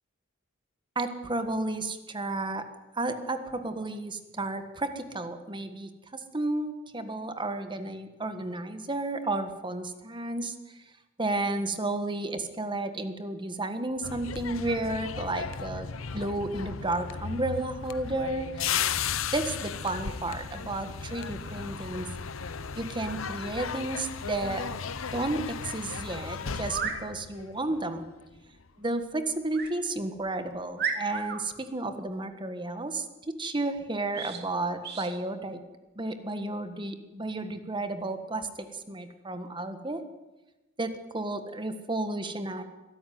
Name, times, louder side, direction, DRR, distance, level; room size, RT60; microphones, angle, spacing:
voice 1, 0.9-2.7 2.9-10.5 11.2-18.6 19.3-22.1 22.8-24.8 25.1-28.1 28.8-35.6 35.9-40.0 40.8-42.6, right 2 dB, 25° right, 9 dB, 1.5 m, -32 dB
sound 1, 14.0-28.0 28.3-28.6, left 6 dB, 85° left, 0.9 m, -35 dB
sound 2, 26.6-27.0 29.5-29.7 30.3-30.4 30.8-31.4 34.1-34.4 34.8-35.1, right 6 dB, 55° right, 2.7 m, -33 dB
23.0 x 13.0 x 9.4 m, 1.1 s
head